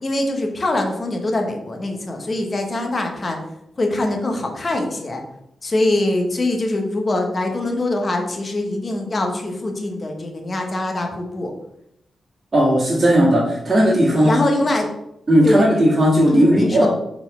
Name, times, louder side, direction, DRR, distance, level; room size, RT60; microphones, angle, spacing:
voice 1, 0.0-3.4 3.8-5.2 5.6-11.5 14.2-15.0 15.4-15.9 16.3-16.9, left 2 dB, 30° left, 3 dB, 1.0 m, -23 dB
voice 2, 12.5-14.4 15.3-16.9, equal, 25° right, -10 dB, 1.8 m, -16 dB
4.6 x 4.1 x 5.5 m, 0.80 s
wide cardioid pair, 165°, 0 cm